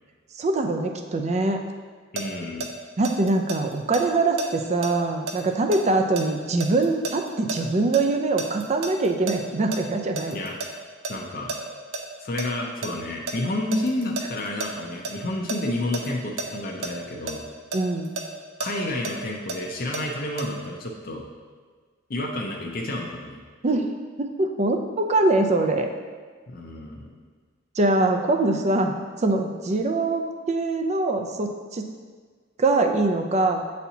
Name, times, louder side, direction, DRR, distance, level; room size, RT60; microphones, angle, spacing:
voice 1, 0.4-1.6 3.0-10.4 17.7-18.2 23.6-23.9 24.2-25.9 27.8-28.9 29.2-31.9 32.6-33.6, right 2 dB, 35° right, 5 dB, 0.4 m, -23 dB
voice 2, 2.1-2.7 10.3-10.6 11.1-11.5 12.2-17.4 18.6-21.3 22.1-23.4 26.5-27.1, left 1 dB, 50° left, 0 dB, 0.6 m, -30 dB
sound 1, 2.2-8.0 8.4-10.7 11.0-11.1 11.5-12.0 12.4-15.6 15.9-16.1 16.4-16.5 16.8-16.9 17.3-20.0 20.4-20.5, right 3 dB, 80° right, 0.7 m, -32 dB
8.0 x 4.2 x 2.8 m, 1.5 s
head